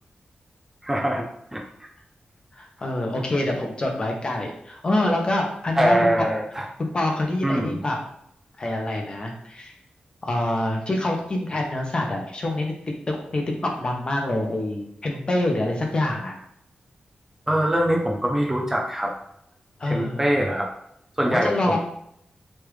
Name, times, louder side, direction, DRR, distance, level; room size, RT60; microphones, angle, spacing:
voice 1, 0.8-1.2 1.5-1.6 5.8-6.7 7.4-7.8 17.5-19.1 19.8-20.7 21.2-21.8, right 1 dB, 15° right, 0 dB, 0.4 m, -23 dB
voice 2, 2.6-6.3 6.8-8.0 8.6-9.7 10.2-12.7 13.1-16.3 19.8-20.2 21.3-21.8, left 1 dB, 30° left, 1 dB, 0.6 m, -26 dB
3.2 x 2.4 x 3.1 m, 0.72 s
wide cardioid pair, 160°, 3 cm